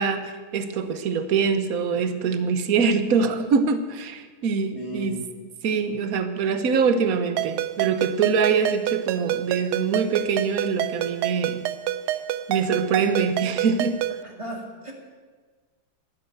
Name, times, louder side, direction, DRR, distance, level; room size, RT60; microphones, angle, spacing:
voice 1, 0.0-5.2 5.6-11.7 12.5-14.0, right 5 dB, 50° right, 10 dB, 1.2 m, -24 dB
voice 2, 4.7-5.2 14.2-14.9, right 1 dB, 15° right, 0 dB, 2.1 m, -35 dB
Ringtone, 7.4-14.2, right 12 dB, 85° right, 1.5 m, -28 dB
12.0 x 11.0 x 9.0 m, 1.5 s
omnidirectional pair, 2.3 m